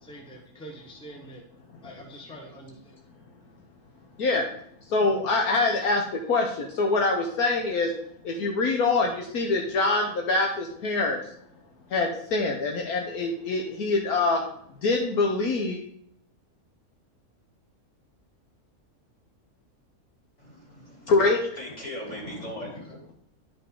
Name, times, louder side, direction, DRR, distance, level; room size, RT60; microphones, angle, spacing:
voice 1, 0.0-1.4 1.8-3.0, right 1 dB, 5° left, 0 dB, 1.1 m, -45 dB
voice 2, 1.7-2.0 4.2-4.5 4.8-7.9 8.2-11.3 11.9-14.4 14.8-15.8 21.1-21.4 22.4-22.5, left 3 dB, 75° left, 2 dB, 1.5 m, -25 dB
voice 3, 20.4-21.1 21.6-23.1, equal, 50° left, -5 dB, 3.9 m, -39 dB
11.0 x 5.4 x 3.7 m, 0.67 s
omnidirectional pair, 1.6 m